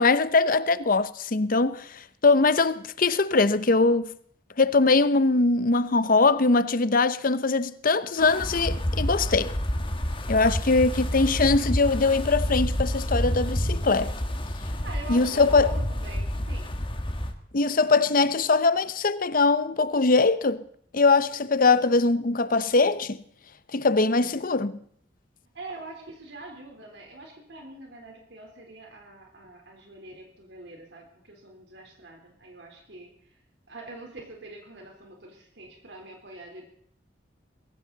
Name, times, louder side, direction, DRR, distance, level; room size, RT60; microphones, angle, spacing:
voice 1, 0.0-4.1 4.6-9.5 10.3-14.1 15.1-15.7 17.5-20.6 20.9-23.2 23.7-24.8, left 3 dB, 50° left, 0.8 m, -22 dB
Wind, 8.2-17.3, equal, 30° left, 1.6 m, -29 dB
voice 2, 14.8-16.7 25.5-33.4 33.7-36.6, right 2 dB, 70° right, 3.8 m, -44 dB
21.0 x 16.5 x 4.1 m
head